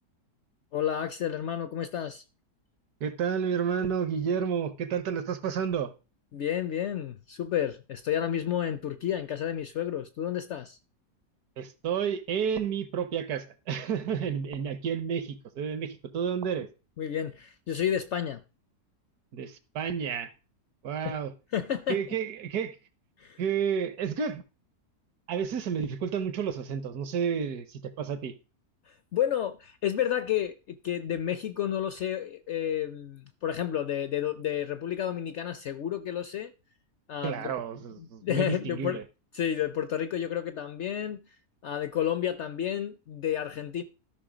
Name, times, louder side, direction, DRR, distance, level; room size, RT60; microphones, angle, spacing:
voice 1, 0.7-2.2 6.3-10.8 17.0-18.4 21.0-21.2 21.5-22.0 23.2-23.4 28.9-30.6 30.8-36.5 37.1-37.5 38.0-39.0 39.3-41.3 41.6-43.8, left 10 dB, 65° left, 0.7 m, -31 dB
voice 2, 3.0-5.9 11.6-16.7 19.3-20.3 20.8-21.3 21.9-22.8 23.4-24.4 25.3-28.3 37.2-39.0, right 7 dB, 75° right, 1.5 m, -31 dB
12.5 x 5.4 x 5.0 m
omnidirectional pair, 1.7 m